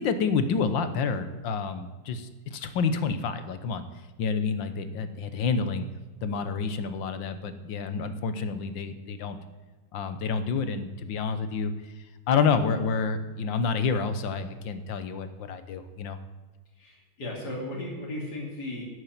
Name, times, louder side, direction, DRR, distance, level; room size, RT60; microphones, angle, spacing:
voice 1, 0.0-3.8 4.2-5.9 6.2-9.4 9.9-11.7 12.3-16.2, left 5 dB, 80° left, 11 dB, 1.7 m, -28 dB
voice 2, 16.7-18.8, left 1 dB, 60° left, -2 dB, 3.4 m, -36 dB
11.5 x 8.5 x 9.3 m, 1.3 s
omnidirectional pair, 2.0 m